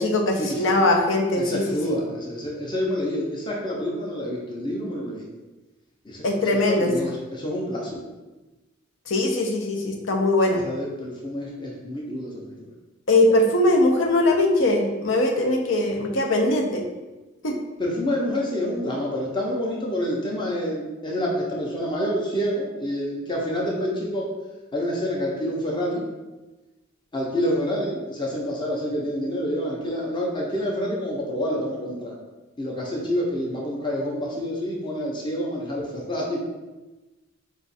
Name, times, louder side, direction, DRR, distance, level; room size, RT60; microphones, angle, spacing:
voice 1, 0.0-1.9 6.2-7.1 9.1-10.6 13.1-16.8 17.4-17.6, left 2 dB, 75° left, 2 dB, 0.7 m, -21 dB
voice 2, 1.4-5.2 6.1-6.2 6.7-8.0 10.6-12.5 17.8-24.3 24.7-26.0 27.1-32.1 32.6-36.4, equal, 25° left, -3 dB, 0.6 m, -27 dB
4.6 x 2.4 x 4.1 m, 1.1 s
head